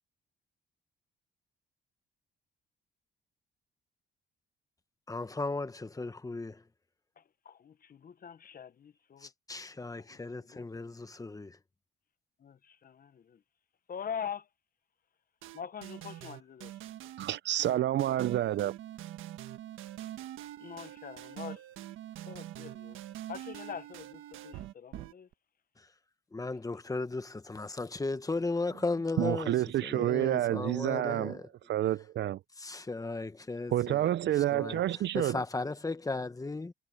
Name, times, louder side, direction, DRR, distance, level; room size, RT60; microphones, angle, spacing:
voice 1, 5.1-6.6 9.2-11.6 25.8-25.9 26.3-31.5 32.6-36.7, left 3 dB, 15° left, 1.4 m, -36 dB
voice 2, 7.2-9.3 10.1-10.6 12.4-13.4 13.9-14.4 15.5-16.7 20.6-21.6 22.3-23.0 23.3-25.3, left 7 dB, 45° left, 1.1 m, -43 dB
sound 1, 15.4-25.3, right 13 dB, 85° right, 1.5 m, -44 dB
voice 3, 17.2-18.7 29.2-31.4 31.7-32.4 33.7-35.4, right 13 dB, 65° right, 0.5 m, -29 dB
cardioid pair, 90°, 20 cm